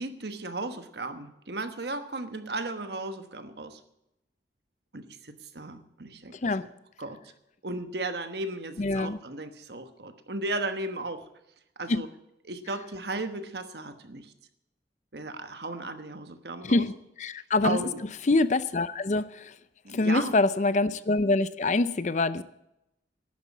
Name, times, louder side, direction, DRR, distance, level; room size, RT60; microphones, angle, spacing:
voice 1, 0.0-3.8 4.9-6.7 7.0-7.2 7.6-11.3 11.8-12.1 12.4-14.3 15.1-16.9 17.6-18.0 19.8-20.4, right 2 dB, 65° right, 9 dB, 1.2 m, -35 dB
voice 2, 8.8-9.2 11.9-12.0 16.6-16.9 17.2-17.9 18.3-19.5 19.9-22.4, left 2 dB, 40° left, 15 dB, 0.5 m, -25 dB
11.5 x 9.6 x 8.3 m, 0.85 s
head